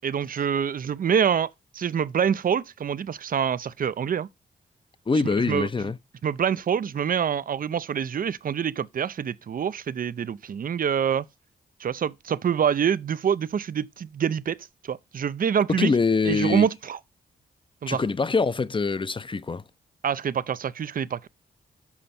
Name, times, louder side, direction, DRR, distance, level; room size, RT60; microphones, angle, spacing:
voice 1, 0.0-4.3 5.4-5.9 6.2-11.3 11.8-15.9 16.2-17.0 17.8-18.0 20.0-21.3, right 7 dB, 50° right, 0.6 m, -26 dB
voice 2, 5.1-6.0 15.8-16.7 17.9-19.6, left 4 dB, 30° left, 0.6 m, -24 dB
7.2 x 5.2 x 4.2 m
cardioid pair, 65°, 18 cm